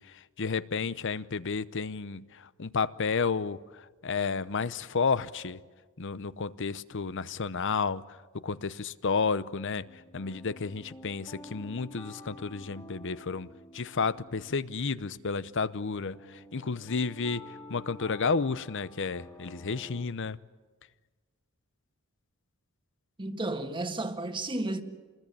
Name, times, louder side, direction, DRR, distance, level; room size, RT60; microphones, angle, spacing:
voice 1, 0.0-5.6 6.0-13.5 13.7-20.4, left 5 dB, 60° left, 0.8 m, -32 dB
sound 1, 9.8-20.1, left 1 dB, 20° left, 2.4 m, -50 dB
voice 2, 23.2-24.8, right 2 dB, 25° right, 1.6 m, -32 dB
28.0 x 20.5 x 8.8 m
head